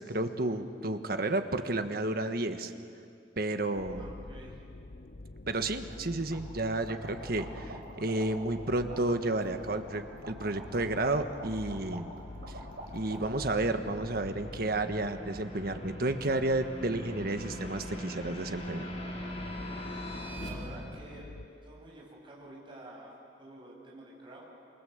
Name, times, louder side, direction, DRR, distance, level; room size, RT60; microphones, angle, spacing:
voice 1, 0.0-2.7 3.4-4.1 5.5-12.1 12.9-18.9, right 2 dB, 60° right, 8 dB, 1.4 m, -31 dB
sound 1, 3.8-21.5, left 2 dB, 60° left, 0.8 m, -46 dB
voice 2, 4.0-4.6 20.4-21.4 21.6-24.4, right 1 dB, 30° right, -4 dB, 7.6 m, -49 dB
sound 2, 5.5-5.6 5.9-6.0 6.3-13.6, right 1 dB, 75° right, 4.5 m, -46 dB
sound 3, 9.8-20.5, left 1 dB, 40° left, 4.9 m, -44 dB
28.0 x 25.5 x 8.0 m, 2.4 s
head